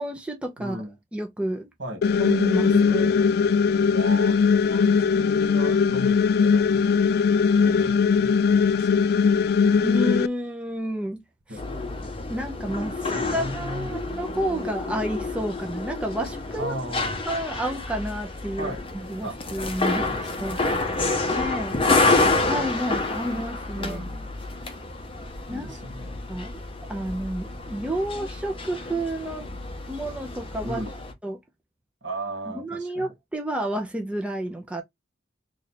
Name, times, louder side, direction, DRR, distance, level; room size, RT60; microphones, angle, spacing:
voice 1, 0.0-0.8 1.1-1.7 2.2-3.1 9.8-11.2 12.3-16.7 17.3-20.1 20.4-20.6 21.3-21.8 22.5-24.1 25.5-25.7 26.3-26.6 26.9-29.5 29.9-30.8 31.2-31.4 32.6-34.8, right 1 dB, 5° right, 0.6 m, -30 dB
voice 2, 0.6-0.9 1.8-2.0 2.7-3.2 3.9-6.9 7.6-8.9 11.5-11.8 13.1-13.9 16.6-17.1 18.6-18.8 19.2-19.4 19.9-23.0 23.7-24.3 25.5-26.2 30.6-30.9 32.0-33.1, right 1 dB, 80° right, 1.7 m, -37 dB
sound 1, 2.0-10.3, left 5 dB, 60° left, 0.3 m, -20 dB
sound 2, 11.6-31.1, left 3 dB, 30° left, 0.8 m, -28 dB
3.2 x 2.6 x 4.1 m
head